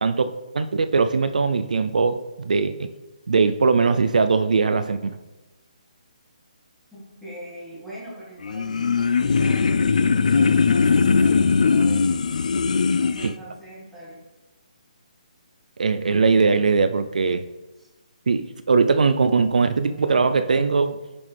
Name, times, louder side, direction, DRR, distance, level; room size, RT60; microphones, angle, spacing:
voice 1, 0.0-2.9 3.3-5.2 13.2-13.3 15.8-17.4 18.3-21.0, right 4 dB, 80° right, 10 dB, 0.5 m, -20 dB
voice 2, 6.9-12.2 13.0-14.2 17.8-17.9, equal, ahead, -9 dB, 1.8 m, -41 dB
sound 1, 8.4-13.3, left 5 dB, 70° left, 0.4 m, -20 dB
7.2 x 6.1 x 3.4 m, 1.1 s
hypercardioid pair, 170°, 4 cm